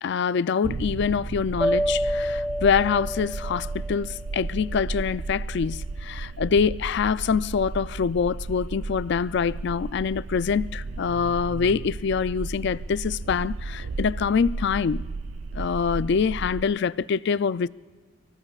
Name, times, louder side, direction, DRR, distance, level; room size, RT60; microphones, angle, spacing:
voice 1, 0.0-15.1 15.5-17.7, left 6 dB, 55° left, 0.3 m, -25 dB
sound 1, 0.6-16.6, right 3 dB, 85° right, 0.5 m, -34 dB
sound 2, 1.6-4.7, equal, 5° right, 1.2 m, -28 dB
29.0 x 19.0 x 2.4 m
head